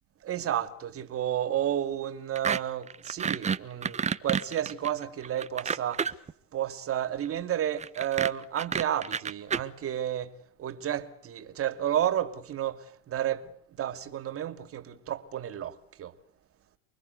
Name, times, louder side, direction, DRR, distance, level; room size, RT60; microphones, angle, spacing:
voice 1, 0.2-6.1 6.5-10.3 10.6-13.5 13.8-16.1, right 11 dB, 30° right, 2.7 m, -31 dB
sound 1, 2.4-2.6 2.9-6.3 7.8-9.6, right 6 dB, 15° right, 1.1 m, -29 dB
29.5 x 23.5 x 8.2 m
supercardioid pair, 125°, 43 cm